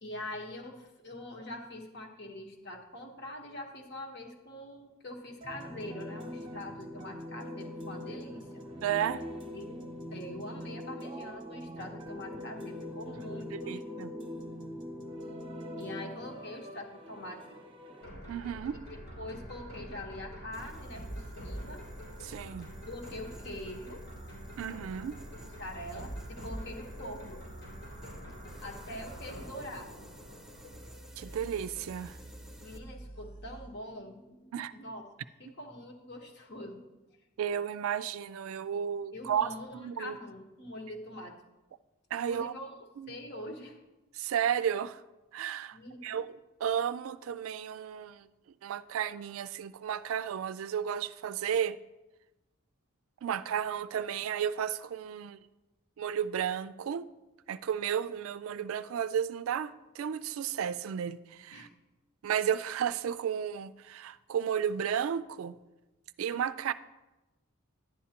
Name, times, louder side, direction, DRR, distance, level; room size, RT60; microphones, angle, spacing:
voice 1, 0.0-8.6 9.5-14.1 15.8-17.6 18.9-21.8 22.9-24.1 25.4-27.5 28.6-29.9 32.6-35.1 35.4-36.9 39.1-41.4 42.3-42.8 43.1-43.8 45.7-46.2 61.5-61.7, left 1 dB, 50° left, 1.1 m, -44 dB
sound 1, 5.4-18.1, left 1 dB, 25° right, 0.9 m, -42 dB
voice 2, 8.8-9.2 13.5-14.1 18.3-18.8 22.2-22.7 24.6-25.2 31.2-32.2 34.5-34.7 37.4-40.2 42.1-42.5 43.0-43.1 44.1-45.0 45.3-45.8 46.0-46.3 46.6-48.3 48.6-51.8 53.2-55.4 56.0-57.1 57.5-61.7 62.2-65.5 66.2-66.7, right 8 dB, 80° right, 0.3 m, -33 dB
sound 2, 18.0-33.7, equal, 85° left, 3.1 m, -45 dB
sound 3, 20.5-32.8, equal, ahead, 0.4 m, -56 dB
11.0 x 9.5 x 2.9 m
head